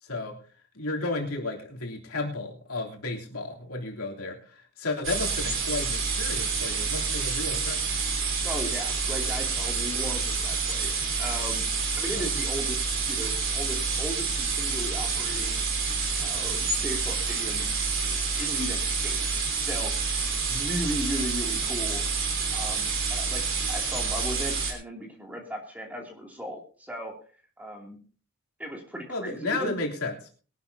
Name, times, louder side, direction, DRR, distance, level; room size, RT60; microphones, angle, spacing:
voice 1, 0.0-0.4 0.7-8.0 20.5-20.6 29.1-30.3, left 2 dB, 85° left, -1 dB, 3.3 m, -33 dB
sound 1, 5.0-24.7, right 4 dB, 60° right, 3.6 m, -28 dB
voice 2, 8.4-11.6 12.0-15.7 16.2-17.7 18.1-19.9 20.5-22.0 22.5-27.1 27.6-28.0 28.6-29.7, equal, 5° right, 0 dB, 2.8 m, -37 dB
21.5 x 12.0 x 2.8 m, 0.40 s
head